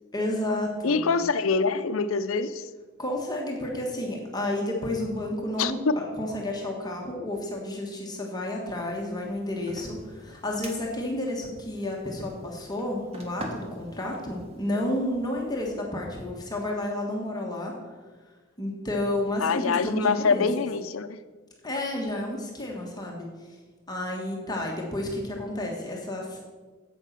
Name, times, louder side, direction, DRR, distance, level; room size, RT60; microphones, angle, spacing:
voice 1, 0.1-1.3 3.0-17.7 18.6-20.5 21.6-23.6 23.9-26.4, left 1 dB, 20° left, -1 dB, 1.4 m, -31 dB
voice 2, 0.8-2.7 5.6-6.0 19.4-21.2, left 4 dB, 90° left, 12 dB, 0.6 m, -25 dB
sound 1, 8.9-15.7, right 1 dB, 30° right, 1.6 m, -46 dB
9.1 x 8.2 x 5.9 m, 1.4 s
head